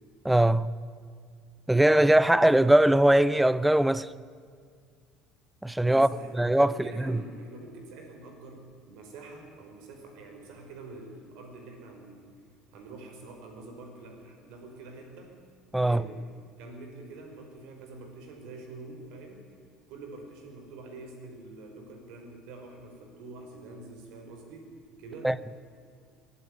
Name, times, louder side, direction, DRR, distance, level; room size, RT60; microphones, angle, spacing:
voice 1, 0.2-0.7 1.7-4.1 5.6-6.1 6.4-6.7 7.0-7.2 15.7-16.0 25.2-25.4, right 1 dB, 5° right, 0.5 m, -21 dB
voice 2, 5.8-12.4 12.7-15.4 15.8-16.2 16.6-19.5 19.9-25.3, right 3 dB, 70° right, 5.2 m, -46 dB
22.0 x 12.5 x 9.9 m
cardioid pair, 135°, 0 cm